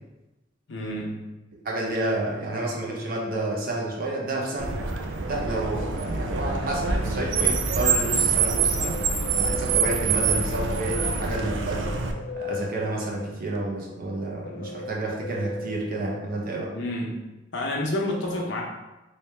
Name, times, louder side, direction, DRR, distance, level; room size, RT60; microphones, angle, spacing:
voice 1, 0.7-1.2 16.7-17.2 17.5-18.6, left 1 dB, 80° left, -2 dB, 0.8 m, -29 dB
voice 2, 1.6-4.8 5.3-9.0 9.3-11.9 12.4-16.7, right 1 dB, 50° right, -1 dB, 0.7 m, -30 dB
Car, 4.6-12.1, right 5 dB, 90° right, 0.4 m, -25 dB
sound 1, 8.2-16.9, left 3 dB, 65° left, 0.4 m, -38 dB
3.2 x 2.8 x 3.2 m, 1.0 s
head